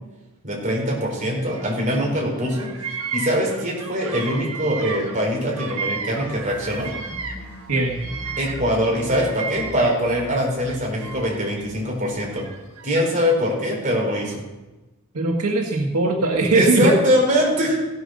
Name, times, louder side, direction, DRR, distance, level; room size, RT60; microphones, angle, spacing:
voice 1, 0.4-2.7 3.1-6.9 8.4-12.4 12.8-14.4 16.5-17.7, equal, 35° right, -2 dB, 4.3 m, -22 dB
Bird vocalization bird call bird song, 1.4-2.1 2.4-7.5 7.7-10.2 10.6-11.6 12.3-13.4, right 5 dB, 70° right, 1.6 m, -34 dB
sound 1, 5.9-12.2, equal, 10° left, 4.0 m, -41 dB
voice 2, 15.1-16.9, right 2 dB, 90° right, 0 dB, 1.7 m, -20 dB
16.5 x 7.9 x 6.5 m, 1.1 s
head